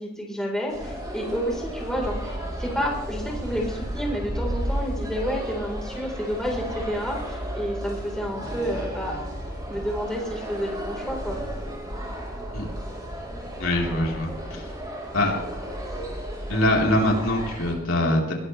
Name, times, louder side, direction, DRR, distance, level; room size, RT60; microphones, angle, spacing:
voice 1, 0.0-9.2 9.7-11.4, equal, 5° left, -2 dB, 4.0 m, -30 dB
sound 1, 0.7-17.7, equal, 20° right, 4.4 m, -33 dB
voice 2, 13.6-14.7 15.1-15.3 16.5-18.3, left 1 dB, 75° left, -1 dB, 3.9 m, -23 dB
21.0 x 18.0 x 3.3 m, 0.82 s
head